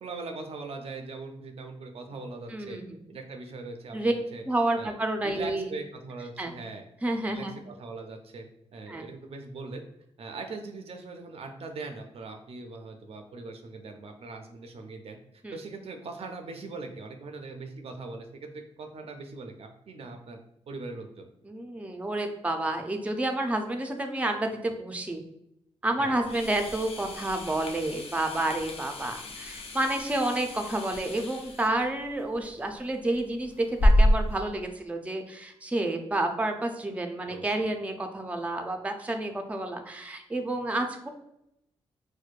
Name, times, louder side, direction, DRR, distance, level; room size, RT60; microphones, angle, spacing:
voice 1, 0.0-2.8 3.1-4.4 4.8-6.8 7.3-8.5 8.7-9.8 10.2-15.2 15.5-20.4 20.7-21.3 26.0-26.3 37.3-37.7, right 3 dB, 65° right, 4 dB, 0.5 m, -41 dB
voice 2, 2.5-3.0 3.9-4.1 4.5-5.7 6.4-6.5 7.0-7.5 8.9-9.0 15.4-15.6 21.4-25.2 25.8-41.1, right 1 dB, 10° right, 4 dB, 0.5 m, -30 dB
sound 1, 26.2-34.4, equal, 60° left, 0.5 m, -29 dB
4.4 x 2.1 x 2.4 m, 0.79 s
cardioid pair, 60°, 11 cm